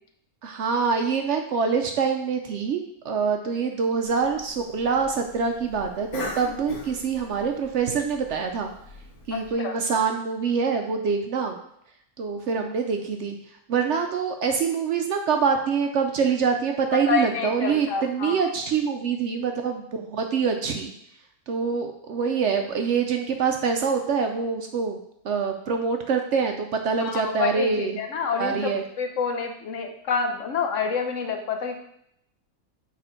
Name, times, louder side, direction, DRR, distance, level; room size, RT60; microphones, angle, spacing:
voice 1, 0.4-8.7 9.3-11.6 12.2-13.4 13.7-20.9 21.5-25.0 25.2-28.0 28.4-28.8, right 5 dB, 65° right, 4 dB, 0.8 m, -25 dB
Cough, 4.0-9.5, left 2 dB, 85° left, 1.5 m, -40 dB
voice 2, 9.3-9.8 17.1-18.4 27.0-28.7 29.0-31.8, left 5 dB, 65° left, 5 dB, 1.0 m, -28 dB
6.5 x 3.5 x 4.3 m, 0.74 s
omnidirectional pair, 1.5 m